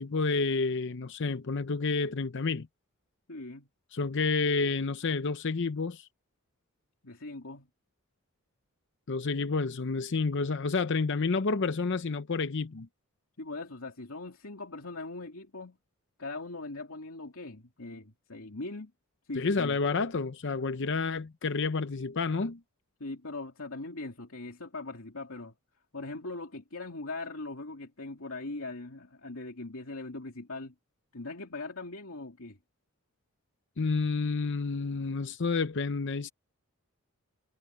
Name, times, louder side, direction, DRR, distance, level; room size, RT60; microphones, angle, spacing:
voice 1, 0.0-2.7 3.9-6.1 9.1-12.9 19.3-22.6 33.8-36.3, left 4 dB, 55° left, 0.7 m, -29 dB
voice 2, 3.3-3.7 7.0-7.7 13.4-15.8 16.2-18.9 19.3-19.8 23.0-25.5 25.9-30.7 31.1-32.6, left 2 dB, 70° left, 2.7 m, -40 dB
head